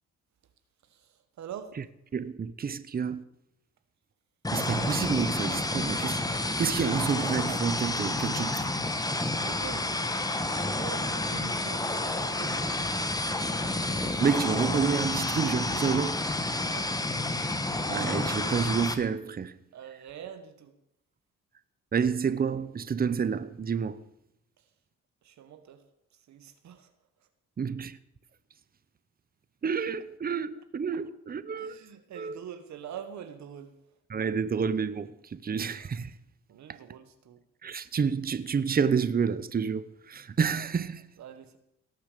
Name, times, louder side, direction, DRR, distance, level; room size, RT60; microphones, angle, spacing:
voice 1, 0.8-1.8 8.6-8.7 9.4-9.9 10.5-12.9 16.6-16.9 19.7-20.7 24.6-24.7 25.2-25.8 26.1-26.9 31.6-33.7 36.5-37.4 41.2-41.6, right 8 dB, 65° right, 1.3 m, -45 dB
voice 2, 2.1-3.2 4.5-8.8 13.9-16.2 17.9-19.6 21.9-24.0 27.6-28.0 29.6-31.8 32.2-32.4 34.1-36.1 36.7-36.8 37.6-41.1, right 6 dB, 30° right, 0.8 m, -29 dB
sound 1, 4.4-18.9, left 2 dB, 10° left, 1.2 m, -30 dB
18.0 x 6.9 x 6.7 m
cardioid pair, 90°, 30 cm